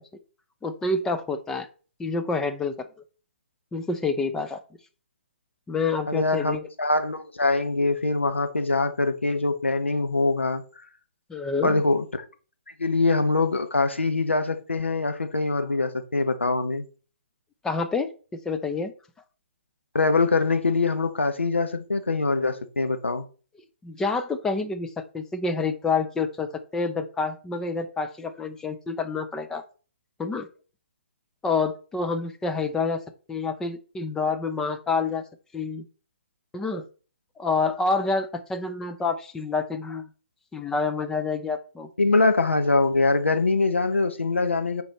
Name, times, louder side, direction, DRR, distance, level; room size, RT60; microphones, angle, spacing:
voice 1, 0.6-1.7 2.0-2.9 3.7-4.6 5.7-6.7 11.3-11.8 17.6-18.9 23.8-29.6 30.2-30.5 31.4-33.0 33.3-35.2 35.5-35.8 36.5-36.8 37.4-40.1 40.5-41.9, left 4 dB, 10° left, 0.6 m, -28 dB
voice 2, 6.1-10.6 11.6-12.1 12.8-16.8 19.9-23.3 42.0-44.8, left 3 dB, 80° left, 1.0 m, -23 dB
8.0 x 4.6 x 4.2 m
figure-of-eight pair, 130°, 6 cm